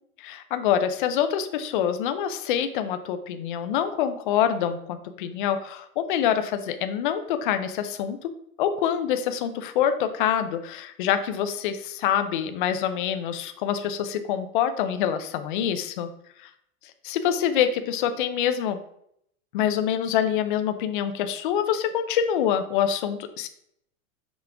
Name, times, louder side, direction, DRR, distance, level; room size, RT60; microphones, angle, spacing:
voice 1, 0.2-8.3 8.6-16.1 16.4-16.5 17.0-18.8 19.5-23.5, left 9 dB, 40° left, 9 dB, 0.4 m, -26 dB
5.9 x 5.1 x 3.4 m, 0.72 s
supercardioid pair, 165°, 43 cm